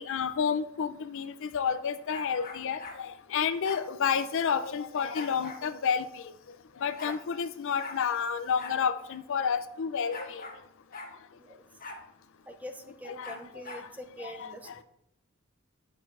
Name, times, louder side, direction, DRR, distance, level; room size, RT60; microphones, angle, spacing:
voice 1, 0.0-6.3 6.8-10.4 13.0-13.3 14.2-14.7, left 6 dB, 60° left, 12 dB, 0.4 m, -30 dB
sound 1, 2.1-3.0 3.6-3.8 5.1-5.6 6.5-6.6 6.8-7.2 7.8-8.0 8.6-8.8 9.1-9.2 10.1-10.6 10.9-11.1 11.8-12.0 13.2-13.9, left 3 dB, 40° left, 1.4 m, -42 dB
voice 2, 12.5-14.8, left 1 dB, 5° right, 7 dB, 0.4 m, -44 dB
9.0 x 6.0 x 2.5 m, 0.82 s
head